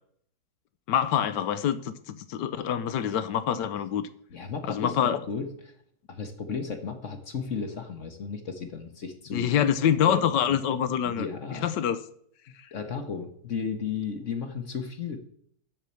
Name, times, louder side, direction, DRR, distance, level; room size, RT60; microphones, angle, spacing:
voice 1, 0.9-4.1 4.7-5.2 9.3-11.3 11.6-12.0, left 9 dB, 70° left, 12 dB, 1.3 m, -25 dB
voice 2, 4.3-5.5 6.1-10.6 11.0-11.7 12.7-15.2, left 5 dB, 50° left, 6 dB, 1.1 m, -34 dB
7.4 x 6.4 x 7.0 m, 0.64 s
omnidirectional pair, 2.0 m